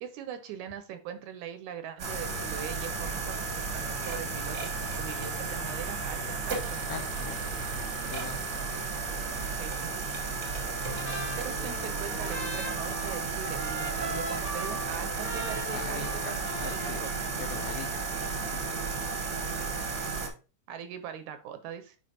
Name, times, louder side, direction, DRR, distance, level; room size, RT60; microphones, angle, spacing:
voice 1, 0.0-6.8 9.5-10.1 11.4-17.3 20.7-22.0, right 9 dB, 75° right, 9 dB, 1.9 m, -41 dB
sound 1, 2.0-20.3, right 4 dB, 55° right, 1.2 m, -33 dB
voice 2, 6.9-7.4 8.0-8.4 15.7-16.4 16.6-17.0 17.4-18.1 18.4-18.9, left 8 dB, 80° left, 5 dB, 1.6 m, -41 dB
Trumpet, 10.6-17.3, equal, 5° left, 0.9 m, -40 dB
8.4 x 5.1 x 2.8 m, 0.35 s
omnidirectional pair, 3.7 m